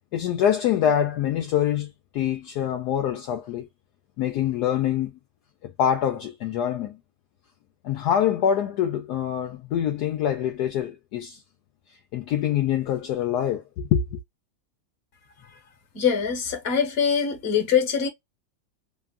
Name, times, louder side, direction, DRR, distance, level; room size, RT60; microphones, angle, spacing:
voice 1, 0.1-3.7 4.2-5.1 5.6-7.0 7.8-11.4 12.1-14.2, left 9 dB, 70° left, 1.0 m, -25 dB
voice 2, 15.9-18.1, left 7 dB, 40° left, 1.1 m, -23 dB
3.5 x 2.3 x 2.3 m
omnidirectional pair, 2.0 m